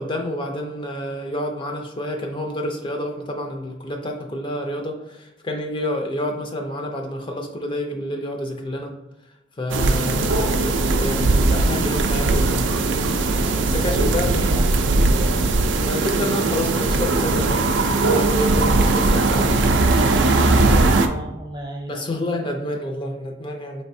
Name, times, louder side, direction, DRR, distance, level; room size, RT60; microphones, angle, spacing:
voice 1, 0.0-8.9 9.6-12.7 13.6-14.5 15.6-19.8 21.9-23.8, left 1 dB, 25° left, 2 dB, 0.4 m, -28 dB
sound 1, 9.7-21.1, right 2 dB, 75° right, 0.4 m, -19 dB
voice 2, 10.1-10.6 13.9-14.7 20.8-22.0, right 1 dB, 25° right, 2 dB, 0.6 m, -34 dB
4.8 x 3.2 x 2.6 m, 0.94 s
head